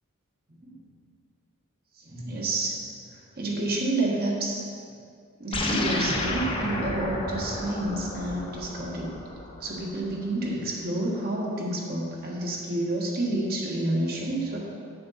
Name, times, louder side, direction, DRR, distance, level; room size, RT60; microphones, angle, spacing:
voice 1, 2.0-2.7 3.1-4.7 5.4-9.1 9.6-14.6, right 2 dB, 45° right, -3 dB, 1.6 m, -29 dB
sound 1, 5.5-10.2, left 1 dB, 25° left, 0.9 m, -31 dB
10.0 x 6.6 x 4.2 m, 2.3 s
head